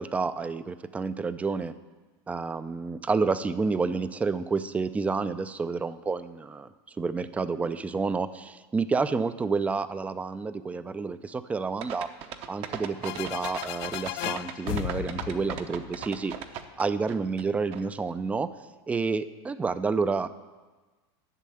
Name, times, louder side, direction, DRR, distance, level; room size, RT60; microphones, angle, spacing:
voice 1, 0.0-1.7 2.3-6.7 7.0-12.1 12.5-16.3 16.8-18.5 18.9-20.3, right 4 dB, 10° right, 13 dB, 0.4 m, -29 dB
sound 1, 11.8-17.4 17.7-17.8, right 9 dB, 45° right, 0.9 m, -37 dB
sound 2, 13.0-16.7, left 17 dB, 60° left, 0.4 m, -36 dB
12.0 x 6.5 x 8.7 m, 1.3 s
supercardioid pair, 140°, 13 cm